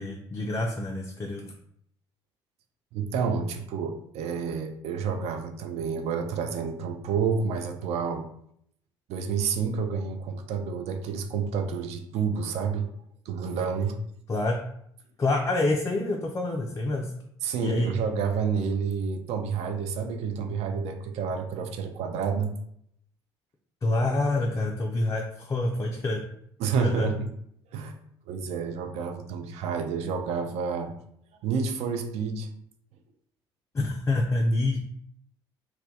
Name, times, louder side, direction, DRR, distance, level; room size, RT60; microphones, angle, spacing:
voice 1, 0.0-1.4 14.3-14.6 15.2-17.1 17.6-17.9 23.8-26.2 26.8-27.1 33.7-34.8, left 2 dB, 25° left, 0 dB, 0.3 m, -26 dB
voice 2, 2.9-8.3 9.1-12.9 13.3-14.0 17.4-22.5 26.6-27.3 27.7-27.9 28.3-31.0 31.4-32.5, right 5 dB, 55° right, 5 dB, 0.4 m, -29 dB
2.2 x 2.1 x 2.7 m, 0.70 s
hypercardioid pair, 55°, 13 cm